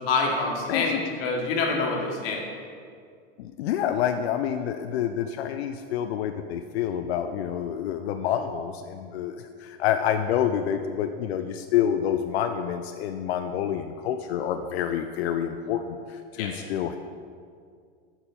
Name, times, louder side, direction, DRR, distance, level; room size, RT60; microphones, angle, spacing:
voice 1, 0.1-2.4 16.4-16.5, left 3 dB, 65° left, 0 dB, 1.5 m, -26 dB
voice 2, 0.7-1.0 3.4-17.0, left 9 dB, 85° left, 7 dB, 0.5 m, -28 dB
6.9 x 5.5 x 4.2 m, 2.2 s
supercardioid pair, 145°, 31 cm